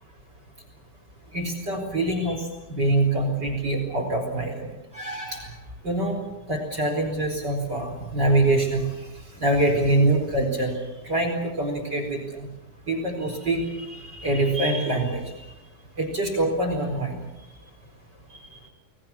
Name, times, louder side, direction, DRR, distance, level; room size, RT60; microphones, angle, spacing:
voice 1, 1.3-5.5 5.8-6.2 6.5-9.1 9.4-10.8 11.0-12.5 12.9-15.2 16.0-17.2 18.3-18.4, right 2 dB, 30° right, 2 dB, 4.8 m, -25 dB
28.5 x 20.5 x 7.2 m, 0.99 s
omnidirectional pair, 4.2 m